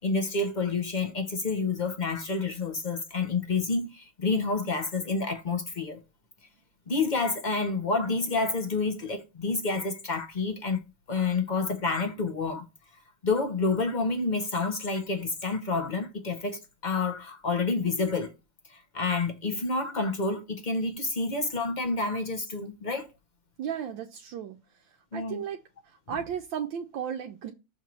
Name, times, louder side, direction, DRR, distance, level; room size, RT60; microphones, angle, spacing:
voice 1, 0.0-6.0 6.9-10.8 11.1-12.7 13.2-18.3 18.7-23.1 25.1-25.4, left 3 dB, 85° left, 0.4 m, -29 dB
voice 2, 23.6-24.6 25.1-25.6 25.9-27.5, right 8 dB, 80° right, 1.4 m, -34 dB
6.5 x 3.1 x 5.9 m
omnidirectional pair, 2.1 m